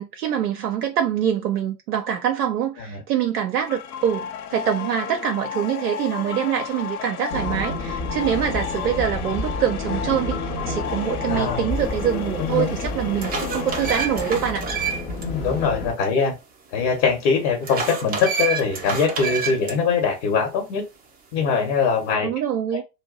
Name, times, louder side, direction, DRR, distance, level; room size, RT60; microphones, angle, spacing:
voice 1, 0.0-14.6 22.2-22.8, right 9 dB, 65° right, 0.7 m, -25 dB
sound 1, 3.6-14.3, left 7 dB, 60° left, 0.7 m, -33 dB
sound 2, 7.3-15.9, left 2 dB, 20° left, 0.8 m, -30 dB
voice 2, 11.3-11.7 12.4-12.8 15.2-16.4 16.7-20.8 21.3-22.3, left 5 dB, 45° left, 1.2 m, -22 dB
sound 3, 12.2-12.3 12.9-15.2 15.6-15.7 17.6-19.7, right 5 dB, 20° right, 0.7 m, -28 dB
2.6 x 2.2 x 3.9 m
figure-of-eight pair, 80°, 50 cm